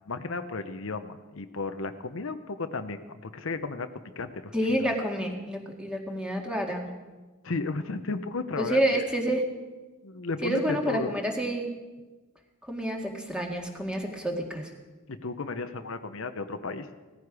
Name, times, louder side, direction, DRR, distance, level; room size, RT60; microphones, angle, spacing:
voice 1, 0.1-3.9 4.2-4.9 7.4-9.1 10.0-11.1 15.2-16.9, left 3 dB, 75° left, 8 dB, 0.8 m, -34 dB
voice 2, 4.5-6.9 8.6-9.4 10.4-11.7 12.7-14.7, right 1 dB, 5° right, 1 dB, 1.9 m, -28 dB
17.5 x 14.5 x 4.9 m, 1.2 s
head